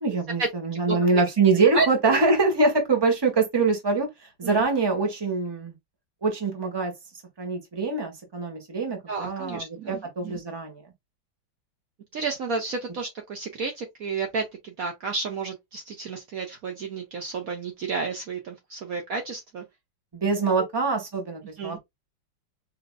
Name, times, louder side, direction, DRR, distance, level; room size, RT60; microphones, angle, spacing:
voice 1, 0.0-5.7 6.2-6.9 7.4-10.8 20.1-21.8, right 3 dB, 15° right, 1.2 m, -24 dB
voice 2, 0.9-1.2 1.7-2.2 4.4-4.6 9.1-10.4 12.1-19.6 21.6-21.8, right 4 dB, 55° right, 1.3 m, -31 dB
5.1 x 2.9 x 2.3 m
omnidirectional pair, 2.0 m